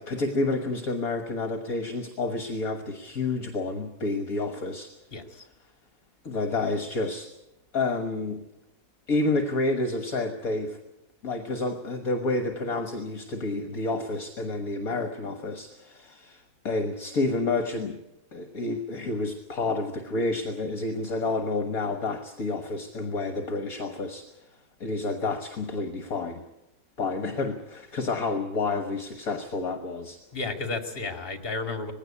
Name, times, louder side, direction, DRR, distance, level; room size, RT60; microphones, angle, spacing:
voice 1, 0.0-4.9 6.3-7.3 7.7-8.4 9.1-10.8 11.2-18.0 18.3-24.3 24.8-26.4 27.0-30.2, left 3 dB, 50° left, 6 dB, 1.7 m, -29 dB
voice 2, 5.1-5.4 30.3-31.9, left 3 dB, 30° left, 5 dB, 2.4 m, -32 dB
20.0 x 16.5 x 8.5 m, 0.90 s
omnidirectional pair, 2.0 m